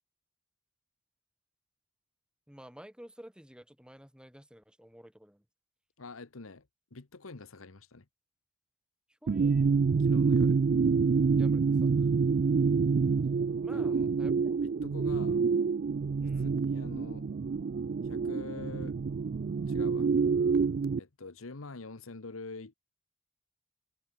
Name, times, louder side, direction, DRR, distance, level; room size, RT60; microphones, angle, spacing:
voice 1, 2.5-5.4 9.2-9.7 11.3-11.9 13.6-14.6 15.0-15.1 16.2-16.6, equal, 5° right, 3.2 m, -52 dB
voice 2, 6.0-8.1 10.0-10.6 13.7-14.1 14.6-15.4 16.4-17.3 18.0-19.0 19.7-20.1 21.0-22.7, left 3 dB, 85° left, 1.2 m, -46 dB
sound 1, 9.3-21.0, right 5 dB, 45° right, 0.3 m, -27 dB
head